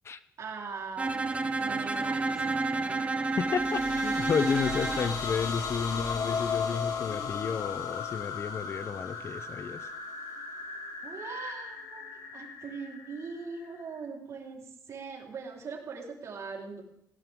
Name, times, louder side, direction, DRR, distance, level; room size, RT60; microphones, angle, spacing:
voice 1, 0.4-1.2 1.4-2.9 11.0-16.8, right 5 dB, 50° right, -1 dB, 4.3 m, -41 dB
Bowed string instrument, 1.0-5.2, right 3 dB, 20° right, 1.0 m, -30 dB
sound 1, 3.4-14.0, left 6 dB, 65° left, 3.2 m, -36 dB
voice 2, 3.4-9.9, left 6 dB, 40° left, 13 dB, 0.8 m, -31 dB
17.5 x 17.0 x 3.8 m, 0.77 s
cardioid pair, 115°, 7 cm